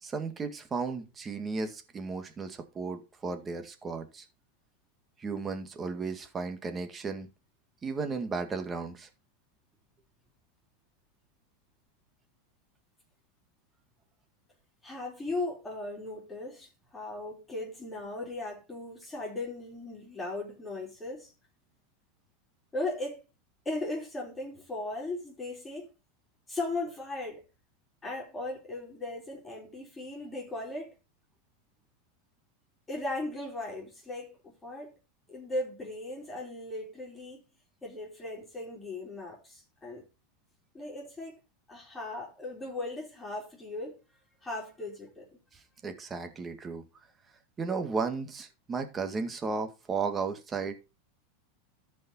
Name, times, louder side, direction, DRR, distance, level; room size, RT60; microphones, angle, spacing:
voice 1, 0.0-4.3 5.2-7.3 7.8-9.1 45.8-46.8 47.6-50.8, right 4 dB, 20° right, 1.9 m, -34 dB
voice 2, 14.8-21.3 22.7-23.2 23.6-25.9 26.5-27.4 28.0-30.9 32.9-34.9 35.3-37.4 37.8-40.0 40.7-41.4 41.7-44.0 44.4-45.3, left 2 dB, 15° left, 4.0 m, -37 dB
13.5 x 5.5 x 4.2 m
supercardioid pair, 120°, 0 cm